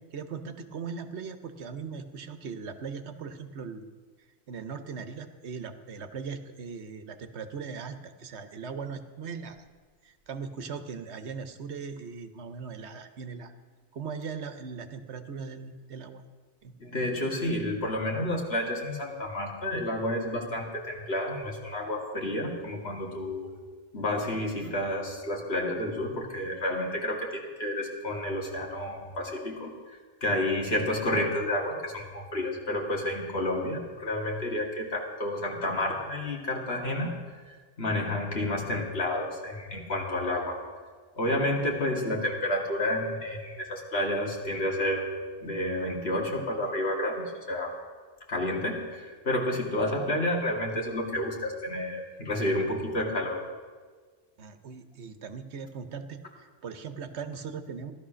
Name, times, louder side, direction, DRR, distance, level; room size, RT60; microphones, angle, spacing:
voice 1, 0.1-3.9 4.5-9.6 10.0-13.5 13.9-16.3 16.6-16.7 54.4-57.9, right 5 dB, 75° right, 9 dB, 1.2 m, -39 dB
voice 2, 16.8-23.5 23.9-40.6 41.2-45.1 45.4-47.8 48.3-53.4, left 1 dB, 65° left, 0 dB, 2.5 m, -30 dB
15.5 x 12.0 x 6.2 m, 1.5 s
omnidirectional pair, 1.2 m